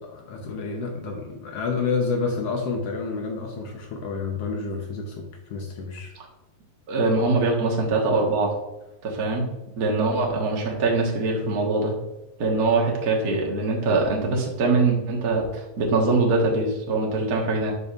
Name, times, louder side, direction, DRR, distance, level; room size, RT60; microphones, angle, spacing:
voice 1, 0.0-5.2 5.5-6.1, left 4 dB, 90° left, 1 dB, 1.3 m, -29 dB
voice 2, 6.9-8.5 9.0-9.5 9.8-11.9 12.4-17.7, right 3 dB, 50° right, -1 dB, 1.1 m, -23 dB
12.0 x 5.3 x 2.5 m, 0.98 s
omnidirectional pair, 4.0 m